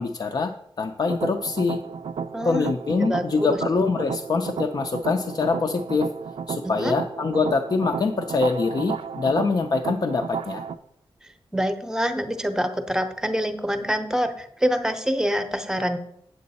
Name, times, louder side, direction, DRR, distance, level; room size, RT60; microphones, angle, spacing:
voice 1, 0.0-1.8 2.5-6.1 6.5-10.6, left 4 dB, 45° left, 3 dB, 0.5 m, -24 dB
sound 1, 1.1-10.8, right 6 dB, 75° right, 0.4 m, -33 dB
voice 2, 2.3-2.7 3.1-3.6 6.6-7.0 11.5-16.0, equal, 5° right, 8 dB, 0.7 m, -26 dB
8.5 x 7.7 x 4.1 m, 0.72 s
wide cardioid pair, 145°, 10 cm